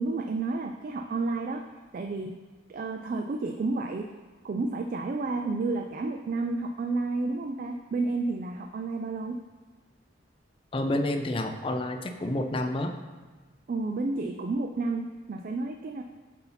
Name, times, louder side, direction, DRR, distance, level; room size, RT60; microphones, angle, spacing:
voice 1, 0.0-1.6 1.9-2.4 2.7-4.1 4.4-9.4 13.7-16.0, right 3 dB, 45° right, 4 dB, 0.3 m, -31 dB
voice 2, 10.7-12.9, left 1 dB, 30° left, 6 dB, 0.4 m, -29 dB
8.1 x 2.7 x 5.6 m, 1.4 s
head